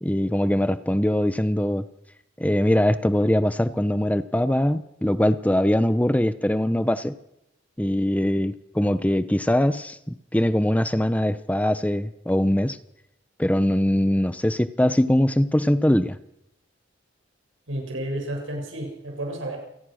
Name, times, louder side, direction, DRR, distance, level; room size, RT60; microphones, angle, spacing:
voice 1, 0.0-1.8 2.4-7.1 7.8-12.8 13.4-16.2, left 1 dB, 10° left, 12 dB, 0.8 m, -22 dB
voice 2, 17.7-19.6, right 1 dB, 85° right, 2 dB, 6.9 m, -31 dB
28.0 x 19.0 x 6.5 m, 0.83 s
head